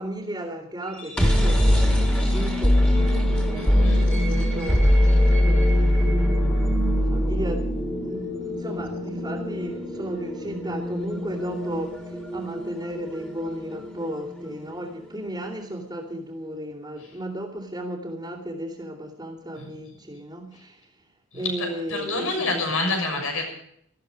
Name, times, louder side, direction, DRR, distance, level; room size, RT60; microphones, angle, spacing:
voice 1, 0.0-20.9 21.3-22.6, equal, 20° right, 2.6 m, -35 dB
sound 1, 0.9-14.7, equal, 5° left, 3.2 m, -22 dB
voice 2, 3.5-4.0 19.6-19.7 21.3-23.5, left 2 dB, 80° left, 6.4 m, -28 dB
19.0 x 13.5 x 5.1 m
head